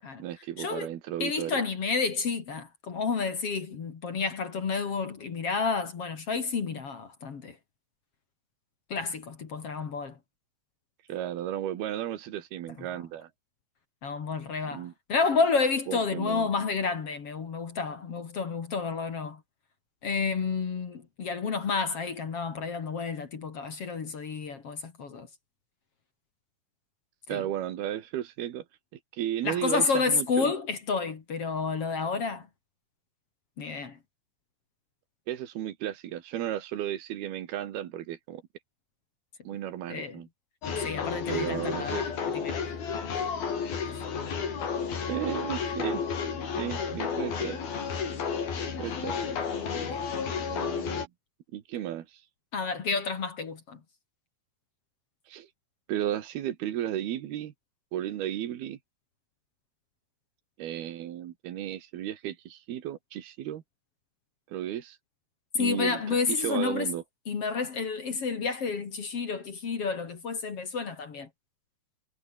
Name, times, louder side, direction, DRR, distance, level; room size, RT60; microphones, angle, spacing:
voice 1, 0.2-1.6 11.1-13.3 14.6-14.9 15.9-16.5 27.3-28.6 28.9-30.5 35.3-38.4 39.4-40.3 41.3-42.1 45.1-46.0 46.6-47.6 48.8-49.2 50.5-51.1 51.5-52.2 55.3-55.5 55.9-57.5 57.9-58.8 60.6-63.6 64.5-65.0 65.5-67.0, right 11 dB, 75° right, 3.5 m, -34 dB
voice 2, 1.2-7.5 8.9-10.1 14.0-19.4 20.0-25.3 27.3-27.4 29.4-32.4 33.6-34.0 39.9-40.1 40.8-42.1 42.3-42.6 49.9-50.0 52.5-53.8 65.6-66.9 67.3-71.3, left 5 dB, 40° left, 2.8 m, -30 dB
sound 1, 40.6-51.1, left 6 dB, 65° left, 6.2 m, -32 dB
omnidirectional pair, 4.5 m